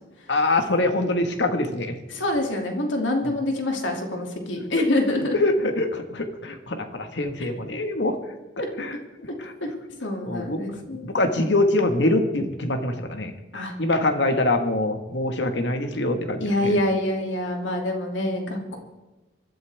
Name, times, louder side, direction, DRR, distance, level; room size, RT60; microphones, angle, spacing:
voice 1, 0.3-2.0 3.2-3.3 5.3-8.2 8.8-9.5 10.2-13.3 13.8-16.8, left 2 dB, 70° left, 6 dB, 1.6 m, -24 dB
voice 2, 2.1-5.3 8.6-8.7 9.6-9.7 10.0-11.1 13.5-13.7 16.4-18.8, left 1 dB, 85° left, 2 dB, 2.5 m, -26 dB
25.5 x 12.0 x 3.5 m, 1.1 s
head